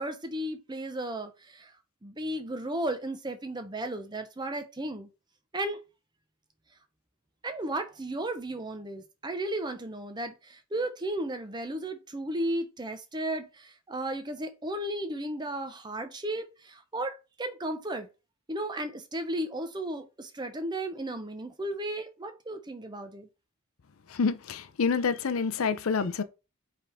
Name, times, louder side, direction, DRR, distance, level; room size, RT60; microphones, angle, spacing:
voice 1, 0.0-1.7 2.0-5.1 5.5-5.8 7.4-18.1 18.5-23.3, right 1 dB, 20° right, 0.7 m, -34 dB
voice 2, 24.1-26.2, left 5 dB, 70° left, 0.5 m, -27 dB
5.8 x 3.6 x 4.9 m
head